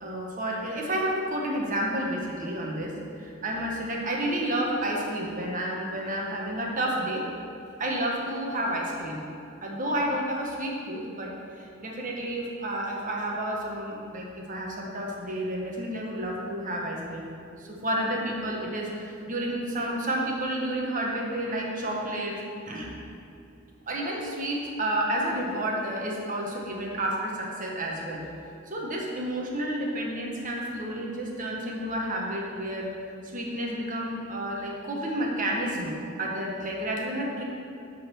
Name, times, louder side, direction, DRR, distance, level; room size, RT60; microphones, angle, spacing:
voice 1, 0.0-7.2 7.8-9.2 9.6-22.4 22.7-23.0 23.9-28.3 28.7-32.9 33.3-37.4, right 1 dB, 40° right, -1 dB, 1.2 m, -30 dB
8.3 x 4.0 x 6.1 m, 2.5 s
head